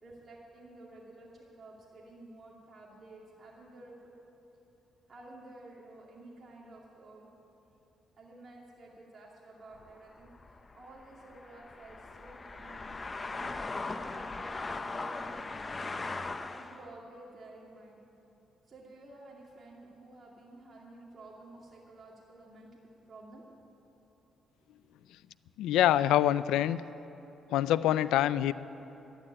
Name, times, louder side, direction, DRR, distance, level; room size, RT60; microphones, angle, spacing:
voice 1, 0.0-4.1 5.1-7.3 7.7-7.8 8.2-13.6 14.0-18.0 18.7-23.4 24.8-24.9, right 2 dB, 40° right, -3 dB, 2.3 m, -52 dB
sound 1, 9.7-16.9, left 3 dB, 25° left, 0.6 m, -39 dB
voice 2, 25.6-26.8 27.5-28.5, left 12 dB, 90° left, 16 dB, 0.4 m, -25 dB
12.0 x 10.5 x 9.7 m, 3.0 s
cardioid pair, 90°, 0 cm